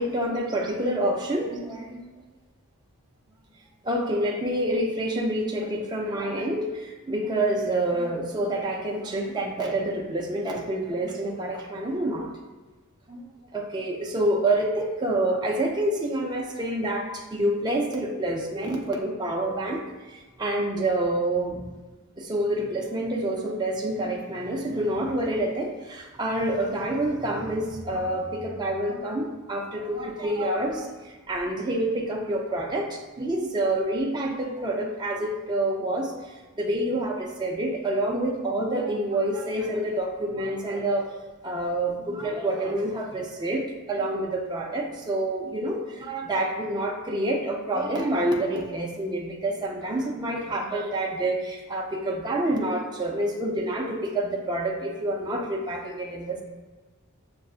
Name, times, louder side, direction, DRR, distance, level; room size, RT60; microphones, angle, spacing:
voice 1, 0.0-2.0 3.8-12.3 13.1-13.2 13.5-19.8 20.1-21.7 22.2-41.2 41.4-56.4, right 1 dB, 20° right, -1 dB, 0.4 m, -27 dB
6.6 x 2.4 x 2.4 m, 1.3 s
head